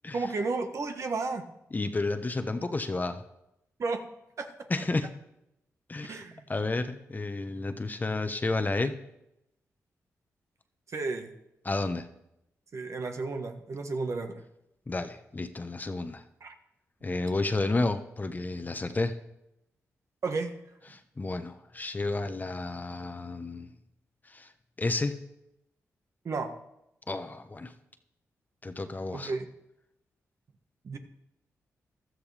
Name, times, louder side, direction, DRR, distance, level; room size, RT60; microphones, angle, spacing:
voice 1, 0.1-1.4 3.8-4.0 4.4-4.5 6.1-6.4 10.9-11.3 12.7-14.4 16.4-16.5 20.2-20.5 26.2-26.5 29.1-29.5 30.8-31.0, right 3 dB, 60° right, 5 dB, 1.5 m, -32 dB
voice 2, 1.7-3.2 4.7-5.1 5.9-9.0 11.6-12.1 14.9-16.2 17.0-19.1 20.9-23.7 24.3-24.5 24.8-25.2 27.1-27.7 28.6-29.3, left 2 dB, 30° left, 8 dB, 1.1 m, -31 dB
15.5 x 12.5 x 3.5 m, 0.84 s
cardioid pair, 65°, 6 cm